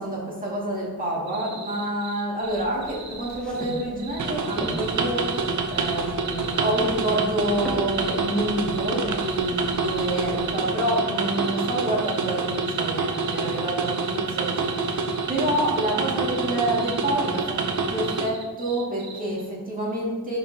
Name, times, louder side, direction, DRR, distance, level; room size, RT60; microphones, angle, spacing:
voice 1, 0.0-20.4, right 1 dB, 25° right, -5 dB, 2.3 m, -28 dB
sound 1, 1.3-19.4, right 5 dB, 80° right, 1.1 m, -41 dB
sound 2, 2.4-10.5, equal, ahead, 1.0 m, -40 dB
sound 3, 4.2-18.3, right 4 dB, 55° right, 0.7 m, -27 dB
11.0 x 5.3 x 2.9 m, 1.3 s
wide cardioid pair, 155°, 36 cm